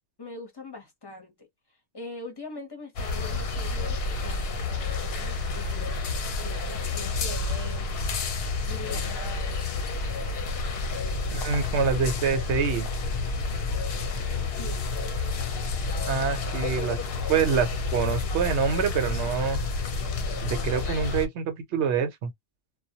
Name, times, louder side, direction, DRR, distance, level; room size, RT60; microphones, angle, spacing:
voice 1, 0.2-1.3 1.9-7.9 8.7-9.7 14.5-14.9, left 3 dB, 25° left, 0.7 m, -42 dB
sound 1, 3.0-21.3, left 3 dB, 65° left, 0.8 m, -30 dB
voice 2, 11.3-12.9 16.1-17.0 17.3-19.6 20.4-22.3, right 6 dB, 80° right, 1.0 m, -26 dB
2.2 x 2.0 x 2.7 m
omnidirectional pair, 1.1 m